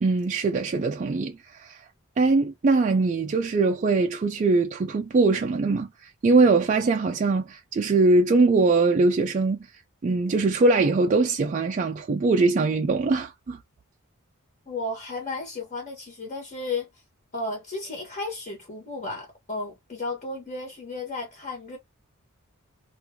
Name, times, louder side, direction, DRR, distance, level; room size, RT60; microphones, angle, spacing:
voice 1, 0.0-1.8 2.2-9.6 10.0-13.6, right 3 dB, 35° right, 0.3 m, -22 dB
voice 2, 14.7-16.9 17.3-21.8, left 2 dB, 40° left, 1.2 m, -33 dB
3.0 x 2.5 x 3.5 m
head